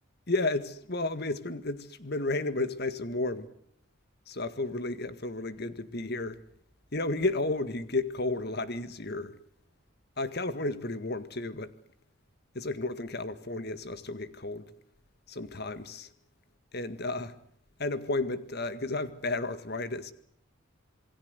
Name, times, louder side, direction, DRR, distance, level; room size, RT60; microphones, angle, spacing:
voice 1, 0.3-3.5 4.3-6.4 6.9-9.3 10.2-11.7 12.6-14.7 15.3-16.1 16.7-17.3 17.8-20.1, left 2 dB, 50° left, 1.9 m, -32 dB
28.0 x 21.0 x 8.2 m
head